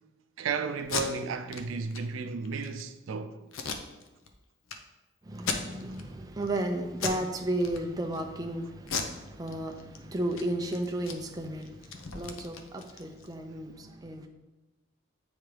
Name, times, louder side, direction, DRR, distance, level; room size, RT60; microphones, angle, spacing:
voice 1, 0.4-3.4, right 5 dB, 80° right, 0.4 m, -33 dB
Packing tape duct tape, 0.8-1.0 1.5-1.6 1.9-2.0 2.4-2.8 3.5-4.3 4.7-4.8 5.3-6.0 6.4-6.6 7.0-7.3 7.6-8.2 8.8-10.0 10.3-10.4 10.7-13.3, left 5 dB, 85° left, 0.6 m, -36 dB
voice 2, 5.2-14.3, right 1 dB, 20° right, 0.4 m, -34 dB
8.9 x 3.5 x 3.3 m
head